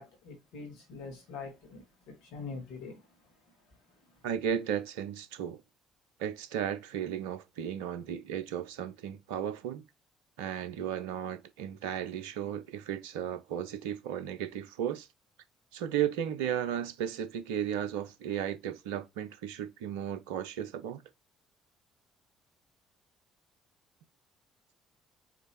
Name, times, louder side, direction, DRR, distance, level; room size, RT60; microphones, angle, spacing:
voice 1, 0.0-3.0, left 4 dB, 65° left, 1.7 m, -44 dB
voice 2, 4.2-5.6 6.2-9.8 10.4-15.1 15.7-21.0, right 9 dB, 70° right, 0.4 m, -35 dB
4.9 x 2.7 x 3.0 m
figure-of-eight pair, 50°, 0 cm